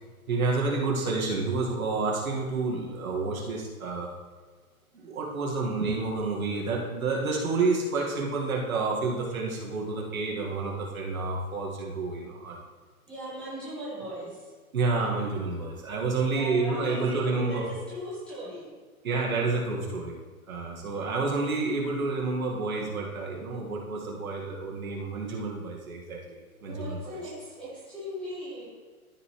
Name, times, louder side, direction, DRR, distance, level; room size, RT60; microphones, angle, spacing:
voice 1, 0.3-4.1 4.9-12.6 14.7-17.6 19.0-20.1 20.5-27.2, right 3 dB, 70° right, -2 dB, 2.0 m, -29 dB
voice 2, 13.1-14.5 16.2-18.7 20.8-21.3 26.7-28.7, equal, ahead, -12 dB, 1.8 m, -39 dB
13.5 x 5.4 x 3.2 m, 1.4 s
hypercardioid pair, 180°, 44 cm